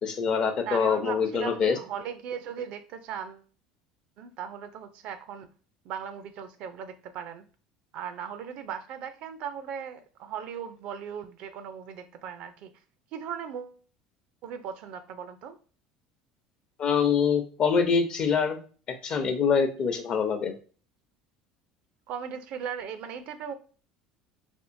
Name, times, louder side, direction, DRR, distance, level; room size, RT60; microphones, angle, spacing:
voice 1, 0.0-1.8 16.8-18.6 19.0-20.5, left 6 dB, 45° left, 0.7 m, -25 dB
voice 2, 0.6-3.4 4.2-5.5 5.8-7.4 7.9-12.7 13.1-13.8 14.4-15.6 22.1-23.5, right 8 dB, 60° right, 0.5 m, -38 dB
3.5 x 2.7 x 2.6 m
hypercardioid pair, 85°, 2 cm